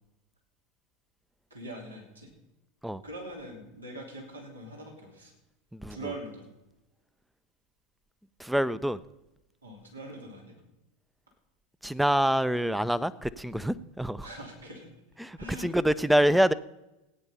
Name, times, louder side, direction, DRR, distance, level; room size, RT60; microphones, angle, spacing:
voice 1, 1.5-2.3 3.0-5.3 5.9-6.5 9.6-10.6 14.2-14.9 15.4-15.7 16.2-16.4, right 1 dB, 80° right, 1 dB, 3.0 m, -42 dB
voice 2, 8.4-9.0 11.8-14.3 15.2-16.5, equal, 5° right, 17 dB, 0.5 m, -26 dB
16.0 x 9.8 x 5.5 m, 0.97 s
figure-of-eight pair, 85°, 0 cm